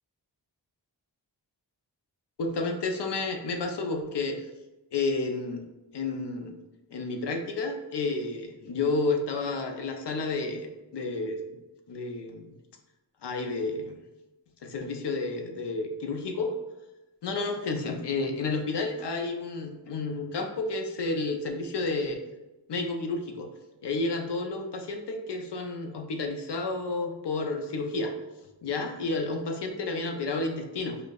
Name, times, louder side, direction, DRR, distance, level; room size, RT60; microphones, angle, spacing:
voice 1, 2.4-4.4 4.9-5.6 5.9-6.6 6.9-10.7 10.9-11.6 11.9-12.5 13.2-14.0 14.6-16.5 17.2-22.2 22.7-23.5 23.8-28.1 28.6-31.0, left 3 dB, 70° left, 4 dB, 0.6 m, -31 dB
5.0 x 2.0 x 2.4 m, 1.0 s
cardioid pair, 55°, 43 cm